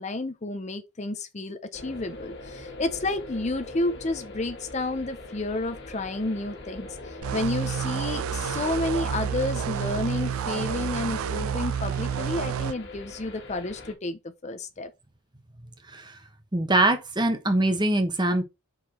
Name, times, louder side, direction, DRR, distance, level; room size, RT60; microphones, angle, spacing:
voice 1, 0.0-14.9, left 2 dB, 35° left, 0.6 m, -31 dB
sound 1, 1.7-13.9, left 2 dB, 55° left, 1.7 m, -41 dB
sound 2, 7.2-12.7, right 8 dB, 75° right, 0.3 m, -29 dB
voice 2, 15.9-16.2 16.5-18.4, right 1 dB, 20° right, 1.1 m, -23 dB
5.6 x 4.8 x 4.2 m
head